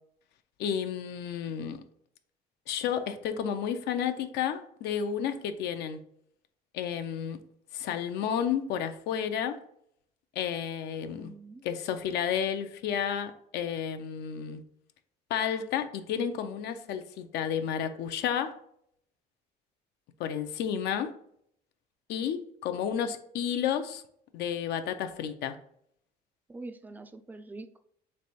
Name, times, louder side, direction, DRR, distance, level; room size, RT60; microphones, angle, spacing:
voice 1, 0.6-1.8 2.7-6.0 6.7-7.4 7.7-9.6 10.4-11.3 11.6-14.6 15.3-18.5 20.2-21.1 22.1-24.0 24.3-25.6, left 8 dB, 80° left, 8 dB, 0.5 m, -31 dB
voice 2, 11.1-11.6 26.5-27.8, right 2 dB, 10° right, 9 dB, 0.3 m, -44 dB
3.4 x 3.2 x 4.2 m, 0.69 s
cardioid pair, 110°, 17 cm